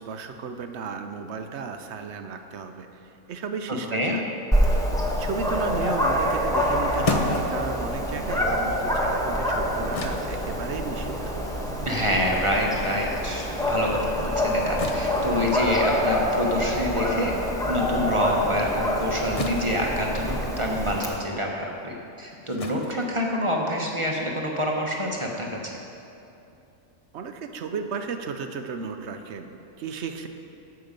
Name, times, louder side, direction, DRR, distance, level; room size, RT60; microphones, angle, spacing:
voice 1, 0.0-4.2 4.6-4.9 5.2-11.4 27.1-30.3, right 5 dB, 65° right, 7 dB, 0.9 m, -34 dB
Dog, 4.5-21.1, equal, 5° left, 1.0 m, -26 dB
sound 1, 7.0-13.3 13.7-23.9, left 3 dB, 35° left, 0.6 m, -37 dB
voice 2, 11.8-17.3 17.7-25.5, equal, 25° right, -1 dB, 1.0 m, -27 dB
14.5 x 6.0 x 5.2 m, 2.7 s
omnidirectional pair, 1.4 m